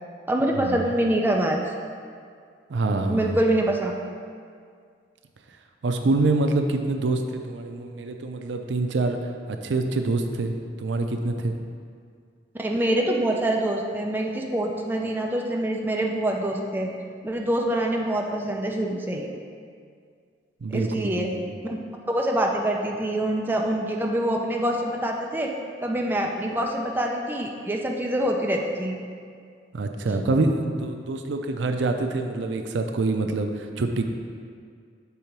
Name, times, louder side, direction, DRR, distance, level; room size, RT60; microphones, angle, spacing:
voice 1, 0.3-1.6 3.1-3.9 12.6-16.9 17.2-19.3 20.7-21.3 21.6-21.8 22.1-25.5 25.8-29.0, right 1 dB, 10° right, 0 dB, 0.4 m, -25 dB
voice 2, 2.7-3.4 5.8-9.2 9.5-11.6 20.6-21.4 29.7-34.0, right 2 dB, 80° right, 5 dB, 0.5 m, -26 dB
7.0 x 3.7 x 4.5 m, 2.1 s
head